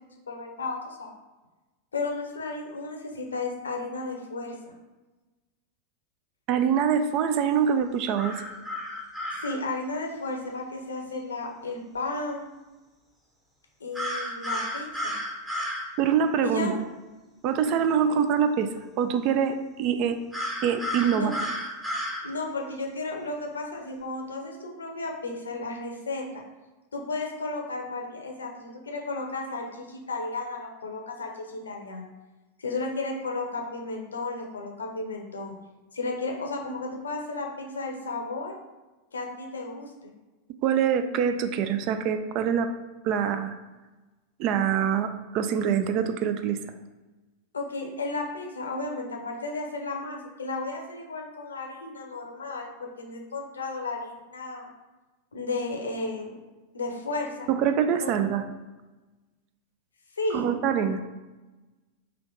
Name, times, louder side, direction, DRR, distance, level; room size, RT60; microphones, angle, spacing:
voice 1, 0.3-1.1 1.9-4.7 9.3-12.5 13.8-15.1 16.4-16.8 18.1-18.2 21.1-21.4 22.2-26.4 26.9-32.1 32.6-35.6 35.9-38.5 39.1-39.9 47.5-54.7 55.3-56.4 56.7-57.5 58.0-58.1 60.2-60.5, left 3 dB, 70° left, 1 dB, 0.7 m, -33 dB
voice 2, 6.5-8.4 16.0-16.8 17.4-18.7 19.0-20.2 20.6-21.3 40.6-42.7 43.0-43.6 44.4-46.6 57.5-58.4 60.3-61.0, right 8 dB, 40° right, 8 dB, 0.3 m, -24 dB
sound 1, 8.2-9.5 13.9-15.8 20.3-22.2, equal, 10° right, 0.9 m, -32 dB
3.3 x 2.8 x 3.8 m, 1.2 s
figure-of-eight pair, 90°, 0 cm